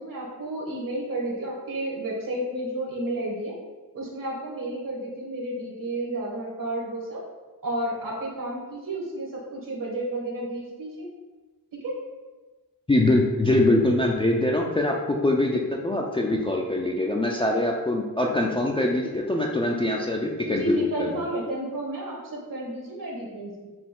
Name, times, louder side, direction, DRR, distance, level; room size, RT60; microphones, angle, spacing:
voice 1, 0.0-3.5 3.9-7.2 7.6-11.1 11.7-11.9 20.4-23.7, right 1 dB, 60° right, -3 dB, 1.3 m, -31 dB
voice 2, 12.9-15.0 15.2-21.2, left 1 dB, 15° left, -1 dB, 0.3 m, -23 dB
4.3 x 2.4 x 3.6 m, 1.2 s
cardioid pair, 75°, 38 cm